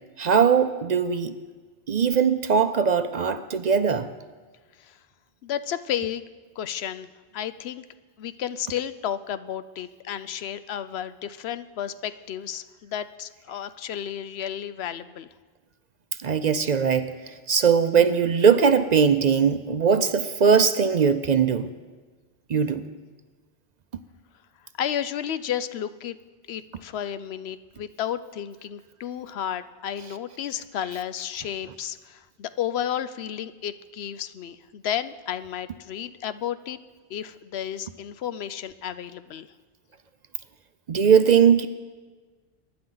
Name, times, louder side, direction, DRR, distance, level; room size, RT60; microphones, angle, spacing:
voice 1, 0.2-1.4 1.9-4.1 16.2-21.7 22.5-22.9 40.9-41.7, right 6 dB, 55° right, 11 dB, 0.6 m, -20 dB
voice 2, 5.4-6.2 6.6-7.8 8.2-15.3 24.8-26.2 26.5-36.8 37.1-39.5, left 10 dB, 85° left, 13 dB, 0.9 m, -32 dB
23.0 x 10.5 x 3.9 m, 1.4 s
omnidirectional pair, 1.0 m